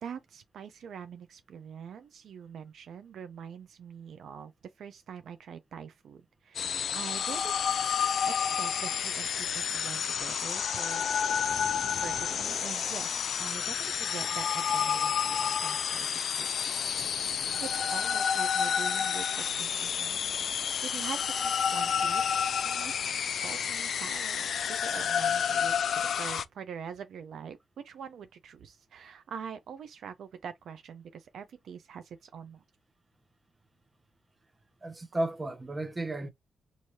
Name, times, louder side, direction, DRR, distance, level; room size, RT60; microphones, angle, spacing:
voice 1, 0.0-7.6 8.2-11.1 11.6-16.8 17.6-22.9 23.3-32.6, right 7 dB, 70° right, 0.5 m, -44 dB
sound 1, 6.5-26.4, left 7 dB, 65° left, 0.3 m, -30 dB
voice 2, 34.8-36.3, right 1 dB, 25° right, 0.8 m, -33 dB
4.7 x 2.6 x 2.8 m
cardioid pair, 85°, 0 cm